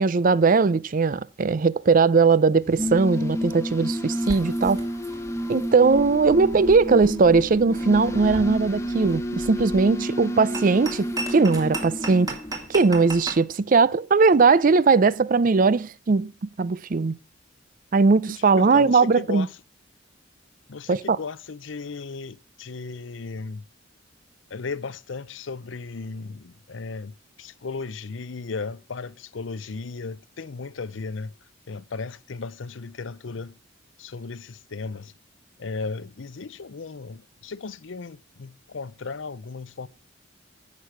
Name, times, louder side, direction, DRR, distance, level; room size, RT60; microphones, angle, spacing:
voice 1, 0.0-4.8 5.5-12.4 12.7-17.2 17.9-19.5 20.9-21.2, right 4 dB, 45° right, 0.5 m, -19 dB
sound 1, 2.6-13.0, equal, 15° left, 0.8 m, -30 dB
sound 2, 4.2-13.4, right 2 dB, 20° right, 2.5 m, -38 dB
voice 2, 18.3-19.5 20.7-23.6 24.5-31.3 31.7-33.6 34.0-35.1 35.6-39.9, left 4 dB, 80° left, 0.6 m, -35 dB
14.5 x 6.5 x 5.8 m
head